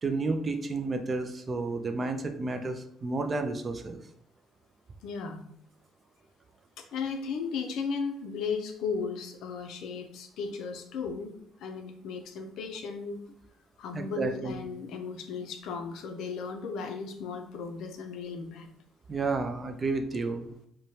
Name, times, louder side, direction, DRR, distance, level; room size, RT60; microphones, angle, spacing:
voice 1, 0.0-4.0 13.9-14.6 19.1-20.5, right 3 dB, 30° right, 6 dB, 0.3 m, -31 dB
voice 2, 5.0-5.4 6.8-11.3 11.6-13.2 13.8-18.7, left 5 dB, 75° left, 5 dB, 0.4 m, -35 dB
3.0 x 2.1 x 2.7 m, 0.72 s
cardioid pair, 125°, 0 cm